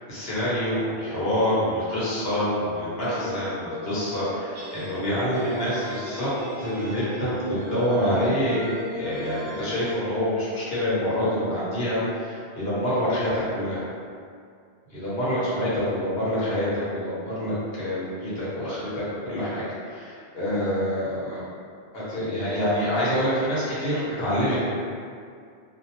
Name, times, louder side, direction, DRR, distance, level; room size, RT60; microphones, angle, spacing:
voice 1, 0.1-6.3 6.6-13.8 14.9-21.4 21.9-24.8, equal, 65° left, -10 dB, 1.0 m, -26 dB
sound 1, 3.0-10.0, equal, 65° right, 0.7 m, -36 dB
2.4 x 2.1 x 2.8 m, 2.3 s
omnidirectional pair, 1.2 m